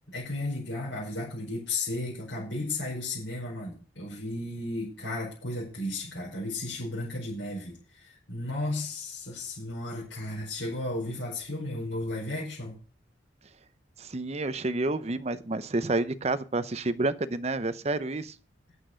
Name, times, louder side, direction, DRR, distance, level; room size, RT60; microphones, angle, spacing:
voice 1, 0.1-12.8, left 2 dB, 85° left, -6 dB, 5.1 m, -34 dB
voice 2, 14.0-18.3, right 2 dB, 35° right, 13 dB, 0.7 m, -29 dB
8.8 x 8.1 x 6.3 m, 0.38 s
head